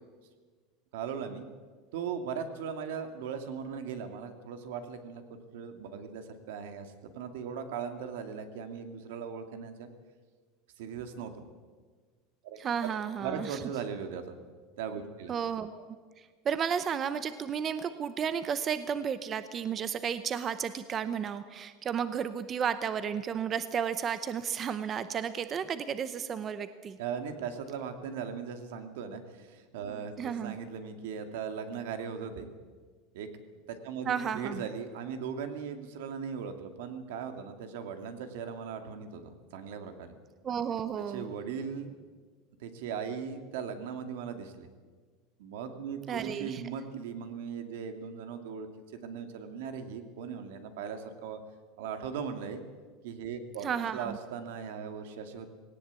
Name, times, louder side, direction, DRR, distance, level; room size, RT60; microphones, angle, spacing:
voice 1, 0.9-1.5 1.9-9.9 10.8-11.3 12.4-12.6 13.2-14.3 14.8-15.3 27.0-32.5 33.1-33.3 33.7-40.1 41.1-42.0 42.6-44.7 45.4-51.4 51.8-52.6 53.0-55.5, right 7 dB, 80° right, 7 dB, 2.3 m, -38 dB
voice 2, 12.6-13.6 15.3-27.0 30.2-30.6 34.1-34.7 40.4-41.3 46.1-46.6 53.6-54.2, right 7 dB, 25° right, 12 dB, 0.7 m, -33 dB
18.5 x 18.0 x 8.3 m, 1.5 s
supercardioid pair, 170°, 0 cm